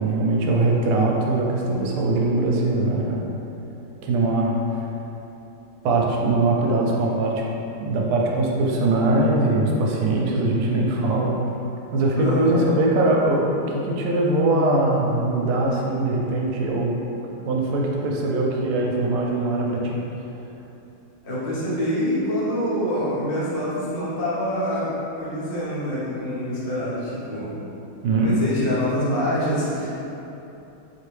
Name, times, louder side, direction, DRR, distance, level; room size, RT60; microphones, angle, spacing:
voice 1, 0.0-3.2 4.0-4.8 5.8-7.4 7.8-11.4 11.9-16.9 17.5-20.0 28.0-28.4, right 2 dB, 85° right, -2 dB, 1.5 m, -21 dB
voice 2, 12.1-12.7 21.2-27.6 28.2-29.9, equal, 45° left, -9 dB, 0.7 m, -26 dB
4.4 x 3.0 x 3.2 m, 3.0 s
omnidirectional pair, 2.4 m